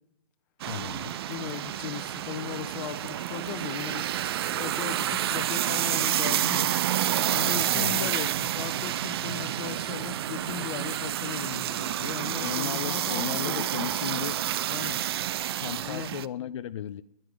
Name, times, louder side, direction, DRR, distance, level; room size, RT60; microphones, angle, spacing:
voice 1, 0.6-1.2 7.7-8.1 12.3-14.4 15.6-17.0, left 10 dB, 50° left, 0.6 m, -35 dB
sound 1, 0.6-16.3, right 12 dB, 40° right, 0.5 m, -29 dB
voice 2, 1.3-6.7 7.0-13.7 14.7-15.0 15.8-16.1, left 10 dB, 30° left, 1.3 m, -38 dB
11.0 x 10.5 x 9.8 m
figure-of-eight pair, 130°, 20 cm